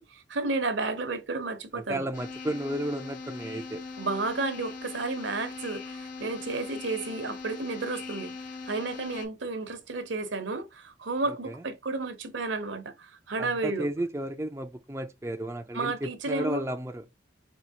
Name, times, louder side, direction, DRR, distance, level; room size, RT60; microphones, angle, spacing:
voice 1, 0.0-2.1 4.0-8.3 8.7-13.9 15.7-16.6, right 3 dB, 65° right, 0.8 m, -32 dB
voice 2, 1.7-3.9 11.3-11.6 13.4-17.0, right 1 dB, 15° right, 0.4 m, -33 dB
sound 1, 2.1-9.3, left 4 dB, 45° left, 0.8 m, -40 dB
4.4 x 2.8 x 2.8 m
head